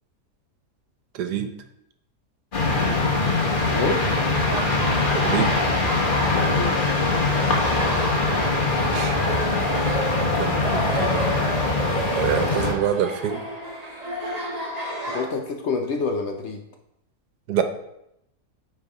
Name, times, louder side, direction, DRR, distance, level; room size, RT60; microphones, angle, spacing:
voice 1, 1.1-1.5 5.1-5.5 7.9-8.1 8.9-9.9 10.4-11.5 12.1-13.4 17.5-17.6, right 8 dB, 85° right, 8 dB, 1.3 m, -27 dB
sound 1, 2.5-12.7, left 3 dB, 35° left, 1.2 m, -22 dB
voice 2, 3.7-4.0 6.3-6.8 15.1-16.6, left 4 dB, 60° left, 4 dB, 0.8 m, -27 dB
Laughter, 4.3-15.2, right 1 dB, 30° right, 1.1 m, -32 dB
8.9 x 3.5 x 4.8 m, 0.80 s
omnidirectional pair, 1.7 m